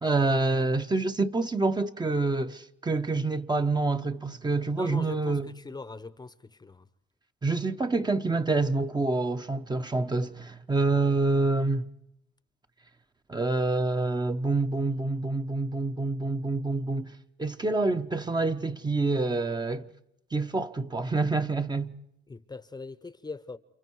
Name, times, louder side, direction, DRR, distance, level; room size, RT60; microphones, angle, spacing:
voice 1, 0.0-5.5 7.4-11.9 13.3-17.1 17.4-19.9 20.3-21.9, right 3 dB, 20° right, 0.9 m, -27 dB
voice 2, 4.7-6.9 22.3-23.6, left 3 dB, 20° left, 0.8 m, -41 dB
30.0 x 27.5 x 4.7 m
cardioid pair, 90°, 20 cm